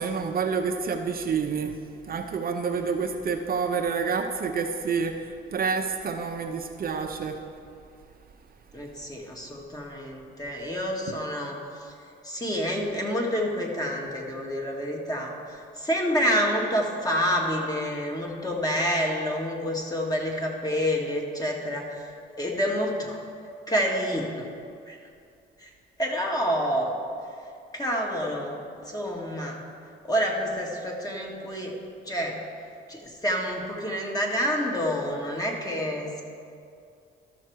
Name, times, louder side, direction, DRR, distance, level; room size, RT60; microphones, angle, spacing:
voice 1, 0.0-1.8 2.1-5.2 5.5-7.4, right 5 dB, 50° right, 4 dB, 0.7 m, -28 dB
voice 2, 8.7-11.9 12.2-22.1 22.4-23.2 23.7-24.4 24.9-25.0 25.6-25.7 26.0-26.9 27.7-28.6 28.8-29.6 30.0-31.7 32.0-32.4 32.9-36.2, equal, 20° left, -1 dB, 1.7 m, -28 dB
13.0 x 6.0 x 4.6 m, 2.4 s
cardioid pair, 90°, 20 cm